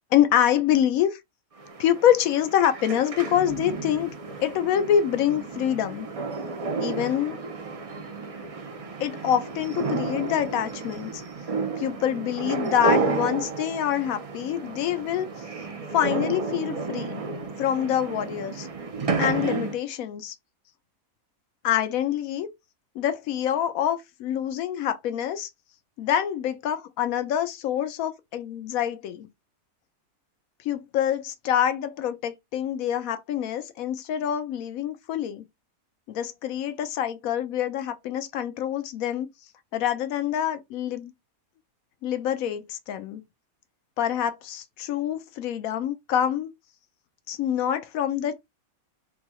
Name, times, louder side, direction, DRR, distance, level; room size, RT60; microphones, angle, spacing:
voice 1, 0.1-1.2 1.8-4.1 4.4-6.1 6.8-7.4 9.0-11.2 11.8-15.3 15.9-17.2 17.6-18.7 19.2-20.3 21.6-22.5 22.9-25.5 26.0-29.3 30.6-35.4 36.1-39.3 39.7-41.1 42.0-43.2 44.0-46.5 47.3-48.3, left 10 dB, 75° left, 1.0 m, -26 dB
sound 1, 1.6-19.8, right 3 dB, 50° right, 0.4 m, -32 dB
3.8 x 2.7 x 3.0 m
omnidirectional pair, 1.5 m